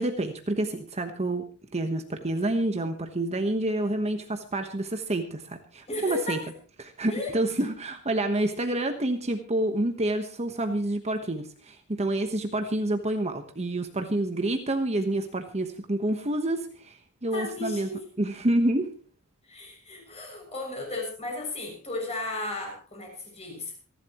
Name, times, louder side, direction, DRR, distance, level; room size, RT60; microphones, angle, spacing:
voice 1, 0.0-1.4 1.7-6.4 6.8-17.9 18.2-18.9, right 1 dB, 30° right, 6 dB, 1.2 m, -28 dB
voice 2, 5.9-6.4 7.1-7.3 17.3-18.1 19.5-23.9, left 2 dB, 30° left, 1 dB, 6.8 m, -35 dB
27.0 x 11.5 x 3.0 m, 0.38 s
head